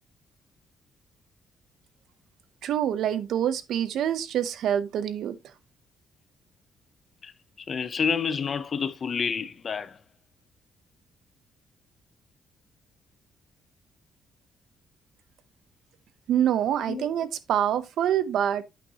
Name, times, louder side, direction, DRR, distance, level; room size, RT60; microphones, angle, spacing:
voice 1, 2.6-5.4 16.3-18.6, right 10 dB, 70° right, 0.7 m, -26 dB
voice 2, 7.2-10.0 16.9-17.1, left 6 dB, 40° left, 0.6 m, -29 dB
8.5 x 5.5 x 2.8 m
cardioid pair, 140°, 0 cm